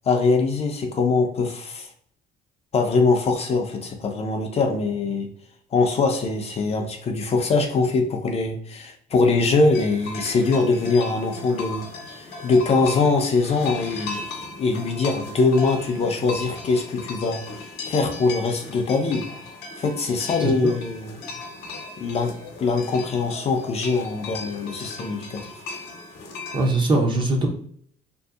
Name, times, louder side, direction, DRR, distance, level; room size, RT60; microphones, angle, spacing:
voice 1, 0.0-1.9 2.7-5.3 5.7-14.2 14.6-19.3 19.8-21.2 22.0-22.3 22.6-25.5, left 3 dB, 40° left, 3 dB, 0.4 m, -22 dB
sound 1, 9.7-26.7, left 3 dB, 75° left, 0.8 m, -37 dB
voice 2, 20.4-20.7 26.5-27.5, right 2 dB, 30° right, 2 dB, 0.6 m, -21 dB
2.6 x 2.5 x 2.4 m, 0.62 s
cardioid pair, 110°, 17 cm